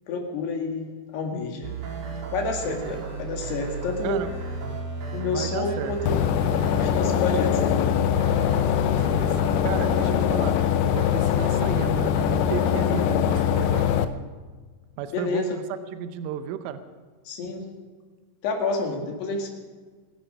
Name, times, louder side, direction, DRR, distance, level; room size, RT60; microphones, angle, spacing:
voice 1, 0.1-0.9 1.1-1.7 2.3-4.2 5.1-6.3 6.6-8.0 15.1-15.6 17.3-17.7 18.4-19.5, left 3 dB, 65° left, 2 dB, 3.7 m, -29 dB
sound 1, 1.6-14.1, right 5 dB, 55° right, 3.8 m, -35 dB
voice 2, 5.2-5.9 8.9-10.6 10.8-13.9 15.0-15.5 15.9-16.8, right 9 dB, 85° right, 10 dB, 3.2 m, -33 dB
sound 2, 6.1-14.1, left 10 dB, 80° left, 2.7 m, -22 dB
25.0 x 10.5 x 5.3 m, 1.5 s
omnidirectional pair, 5.6 m